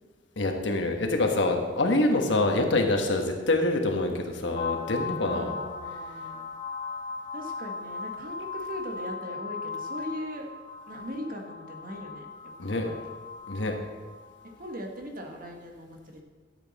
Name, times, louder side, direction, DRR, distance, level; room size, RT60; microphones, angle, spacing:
voice 1, 0.4-5.5 12.6-12.9 13.5-13.7, left 2 dB, 75° left, 4 dB, 1.3 m, -26 dB
sound 1, 4.5-14.7, left 4 dB, 35° left, 2.2 m, -38 dB
voice 2, 5.3-6.5 7.3-10.5 10.9-12.3 12.6-13.0 14.6-16.2, equal, 50° right, 2 dB, 1.5 m, -39 dB
12.5 x 8.2 x 4.1 m, 1.5 s
head